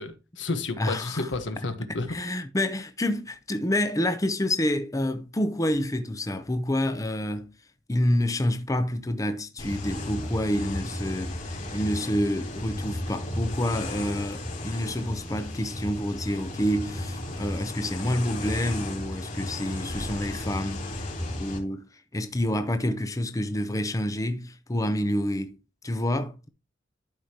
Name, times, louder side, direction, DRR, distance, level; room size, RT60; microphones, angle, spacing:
voice 1, 0.0-2.1, left 3 dB, 75° left, 1.2 m, -31 dB
voice 2, 0.8-1.3 2.1-7.5 7.9-21.9 22.1-25.6 25.8-26.5, left 1 dB, 20° left, 0.6 m, -28 dB
sound 1, 9.6-21.6, left 1 dB, 40° left, 3.0 m, -34 dB
12.0 x 4.9 x 2.9 m
head